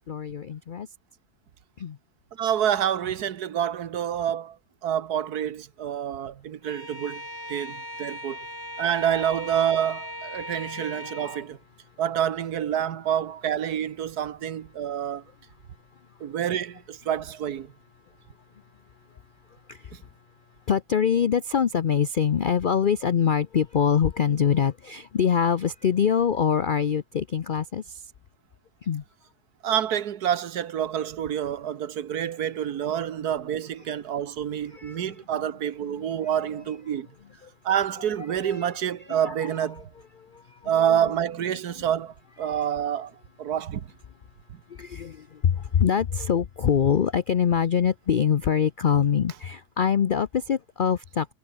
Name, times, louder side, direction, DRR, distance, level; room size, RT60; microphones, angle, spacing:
voice 1, 0.1-0.9 1.8-2.0 19.7-19.9 20.7-28.0 28.8-29.0 34.7-35.0 35.9-36.0 38.4-38.7 39.1-39.5 40.2-41.0 42.4-42.6 44.7-51.3, left 7 dB, 70° left, 0.4 m, -24 dB
voice 2, 2.4-4.6 4.8-7.2 7.5-8.4 8.8-11.6 12.0-15.2 16.2-17.7 19.9-20.0 29.6-37.1 37.6-39.9 40.6-43.1 43.4-43.9, right 9 dB, 70° right, 1.6 m, -27 dB
Bowed string instrument, 6.6-11.5, equal, 10° left, 6.2 m, -38 dB
omnidirectional pair, 1.8 m